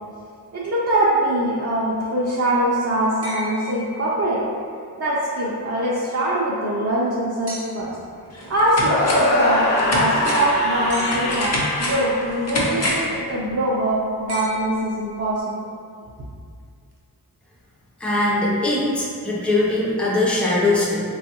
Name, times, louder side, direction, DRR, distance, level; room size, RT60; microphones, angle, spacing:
voice 1, 0.5-4.4 5.0-8.0 8.5-11.5 11.8-15.6, right 1 dB, 40° right, -7 dB, 0.5 m, -22 dB
sound 1, 3.2-4.6 7.5-8.1 10.9-11.7 14.3-15.3 16.9-17.0, right 1 dB, 75° right, 0.7 m, -36 dB
sound 2, 7.8-7.9 8.3-9.4 9.8-13.2 13.5-13.6, left 1 dB, 40° left, 0.7 m, -27 dB
sound 3, 8.8-13.0, left 1 dB, 75° left, 0.5 m, -23 dB
voice 2, 18.0-21.0, left 2 dB, 5° left, -6 dB, 0.6 m, -21 dB
3.3 x 2.3 x 2.9 m, 2.3 s
cardioid pair, 60°, 40 cm